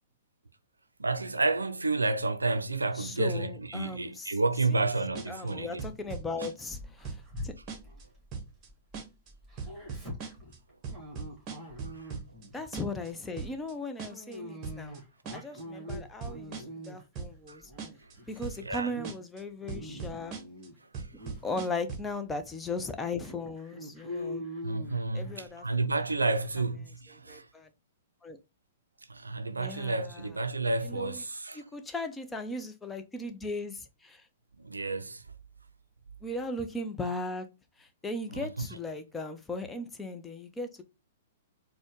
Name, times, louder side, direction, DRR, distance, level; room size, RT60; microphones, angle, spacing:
voice 1, 1.0-5.9 11.8-12.1 17.5-17.6 18.6-18.9 20.9-21.3 24.6-27.5 29.1-31.6 34.6-35.2 38.3-38.7, right 3 dB, 85° right, 0.4 m, -31 dB
voice 2, 2.9-4.3 5.3-7.5 12.5-15.0 15.3-17.6 18.3-20.4 21.4-24.4 25.1-25.6 27.3-27.7 28.2-28.4 29.5-30.3 30.8-31.2 31.5-34.2 36.2-37.5 37.8-40.8, left 2 dB, 10° left, 0.5 m, -37 dB
sound 1, 5.2-5.5 5.8-6.8 7.0-7.4 7.7-8.0 8.3-8.7 8.9-9.3 9.6-10.6 10.8-12.5 12.7-13.1 13.4-13.7 14.0-14.4 14.6-15.0 15.3-15.6 15.9-16.9 17.2-17.5 17.8-18.1 18.4-18.8 19.0-19.4 19.7-20.7 20.9-22.1, right 5 dB, 30° right, 0.9 m, -39 dB
Dog, 6.7-9.0 9.3-12.6 13.0-13.3 14.1-17.2 17.6-18.3 18.7-19.1 19.5-20.8 21.2-21.4 22.0-22.1 22.5-22.6 23.2-25.5, left 1 dB, 10° right, 1.7 m, -43 dB
4.2 x 2.2 x 3.0 m
figure-of-eight pair, 110°, 0 cm